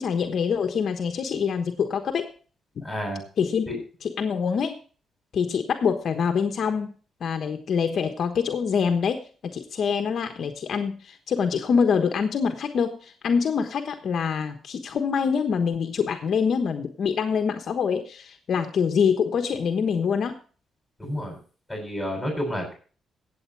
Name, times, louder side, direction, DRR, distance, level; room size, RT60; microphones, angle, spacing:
voice 1, 0.0-2.3 2.8-2.9 3.4-3.7 4.0-4.8 5.3-6.9 7.2-20.4, left 6 dB, 55° left, 6 dB, 1.2 m, -25 dB
voice 2, 2.8-3.2 3.7-3.8 21.0-21.4 21.7-22.7, equal, ahead, 1 dB, 7.9 m, -30 dB
16.0 x 8.1 x 4.6 m, 0.38 s
cardioid pair, 125°, 0 cm